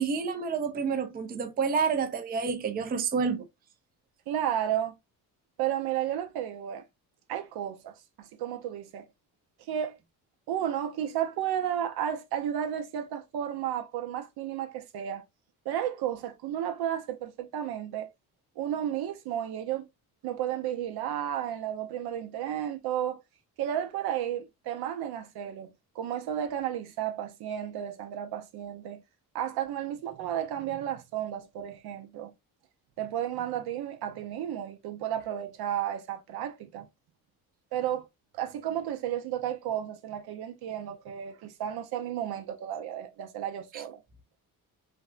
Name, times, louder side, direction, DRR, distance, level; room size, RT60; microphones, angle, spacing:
voice 1, 0.0-3.4 43.7-43.8, right 5 dB, 25° right, 0.4 m, -29 dB
voice 2, 4.3-4.9 5.6-6.8 7.3-9.1 9.7-10.0 10.5-15.2 15.7-18.1 18.6-19.9 20.2-23.2 23.6-29.0 29.3-32.3 33.0-36.9 37.7-38.1 38.3-44.0, right 10 dB, 75° right, 0.6 m, -33 dB
3.3 x 2.1 x 2.4 m
cardioid pair, 95°, 38 cm